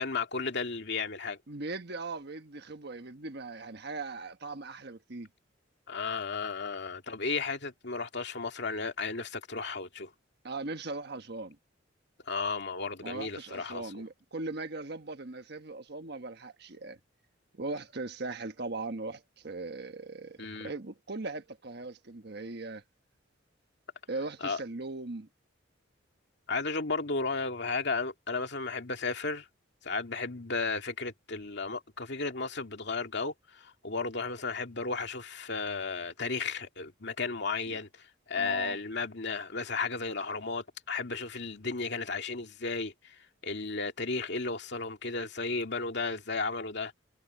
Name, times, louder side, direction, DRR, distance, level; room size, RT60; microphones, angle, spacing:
voice 1, 0.0-1.4 5.9-10.1 12.3-13.9 20.4-20.7 24.4-24.6 26.5-29.5 29.8-46.9, left 4 dB, 60° left, 2.5 m, -34 dB
voice 2, 1.5-5.3 10.4-11.6 13.0-17.0 17.5-22.8 24.1-25.3 37.7-37.8 38.4-38.8, right 3 dB, 55° right, 1.3 m, -39 dB
head